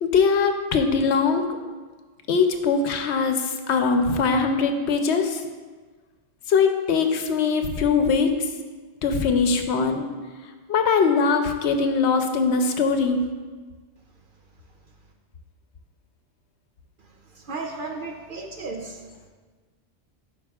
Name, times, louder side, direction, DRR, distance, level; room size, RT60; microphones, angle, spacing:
voice 1, 0.0-1.4 2.3-5.4 6.5-8.3 9.0-10.0 10.7-13.2, left 5 dB, 80° left, 6 dB, 1.0 m, -21 dB
voice 2, 17.3-19.0, right 3 dB, 55° right, 2 dB, 0.7 m, -34 dB
11.5 x 5.2 x 2.4 m, 1.4 s
omnidirectional pair, 1.1 m